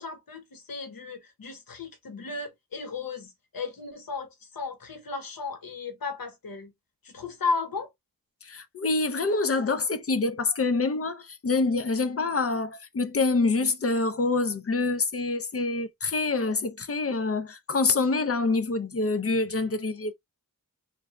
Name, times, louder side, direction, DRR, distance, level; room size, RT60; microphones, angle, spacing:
voice 1, 0.0-6.7 7.0-7.9, left 4 dB, 80° left, 1.0 m, -35 dB
voice 2, 8.4-20.1, left 3 dB, 40° left, 0.5 m, -26 dB
2.6 x 2.2 x 3.2 m
wide cardioid pair, 100°, 34 cm